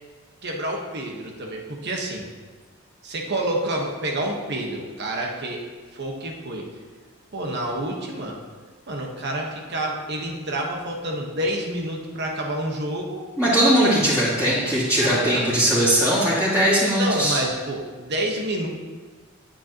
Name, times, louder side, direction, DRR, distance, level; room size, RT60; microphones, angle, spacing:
voice 1, 0.4-2.2 3.0-5.6 5.9-6.6 7.3-8.4 8.9-13.2 14.9-15.5 16.9-18.7, right 1 dB, 50° right, 0 dB, 1.3 m, -28 dB
voice 2, 13.4-17.4, equal, 5° right, -14 dB, 2.6 m, -20 dB
10.5 x 8.5 x 3.0 m, 1.4 s
head